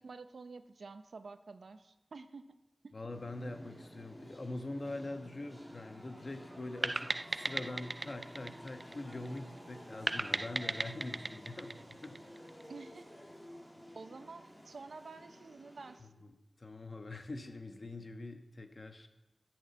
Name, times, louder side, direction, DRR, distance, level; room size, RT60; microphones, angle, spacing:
voice 1, 0.0-2.5 2.8-2.9 12.7-13.1 13.9-16.1, right 4 dB, 90° right, 10 dB, 0.8 m, -49 dB
voice 2, 2.9-12.5 16.6-19.1, left 2 dB, 50° left, 7 dB, 1.3 m, -44 dB
sound 1, 3.1-16.0, equal, 5° left, 2.7 m, -53 dB
sound 2, 6.8-9.4 10.1-12.6, right 2 dB, 25° right, 0.3 m, -37 dB
15.0 x 6.4 x 7.0 m, 0.97 s
wide cardioid pair, 90°, 0 cm